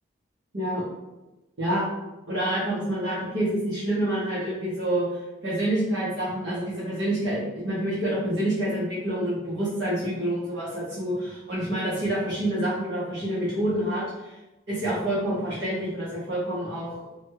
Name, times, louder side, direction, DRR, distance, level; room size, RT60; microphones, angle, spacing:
voice 1, 0.5-0.8 1.6-1.9 2.3-14.4 14.7-16.9, right 1 dB, 75° right, -9 dB, 1.0 m, -27 dB
3.0 x 2.3 x 3.0 m, 1.1 s
head